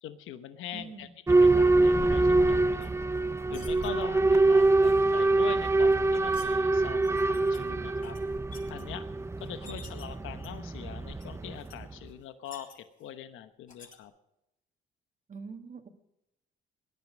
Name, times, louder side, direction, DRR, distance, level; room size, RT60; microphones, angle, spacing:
voice 1, 0.0-1.1 1.4-2.9 3.5-8.2 8.7-9.1 9.4-14.1, left 10 dB, 85° left, 9 dB, 1.1 m, -43 dB
voice 2, 0.7-1.1 4.0-4.4 4.8-4.9 9.6-9.9 15.3-15.9, right 4 dB, 40° right, 6 dB, 2.0 m, -45 dB
Boat Water vehicle / Alarm, 1.3-11.9, right 2 dB, 15° right, 0.6 m, -25 dB
sound 1, 2.8-3.9 5.6-6.5 7.0-7.6 8.0-8.8 9.4-10.0 10.4-10.8 11.2-11.3 11.6-11.8 12.1-13.1 13.7-14.0, left 4 dB, 40° left, 4.7 m, -51 dB
20.5 x 11.0 x 5.3 m, 0.88 s
cardioid pair, 90°, 20 cm